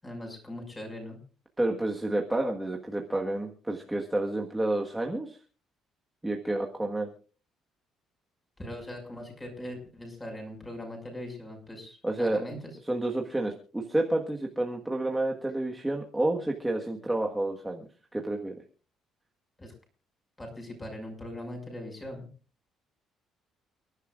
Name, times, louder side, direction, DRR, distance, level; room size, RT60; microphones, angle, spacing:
voice 1, 0.0-1.2 8.6-12.6 19.6-19.7 20.4-22.3, left 1 dB, 15° left, 2 dB, 6.0 m, -40 dB
voice 2, 1.6-5.4 6.2-7.1 12.0-12.4 12.9-18.5, right 1 dB, 5° right, 1 dB, 1.5 m, -30 dB
29.5 x 11.5 x 2.5 m, 0.36 s
cardioid pair, 140°, 0 cm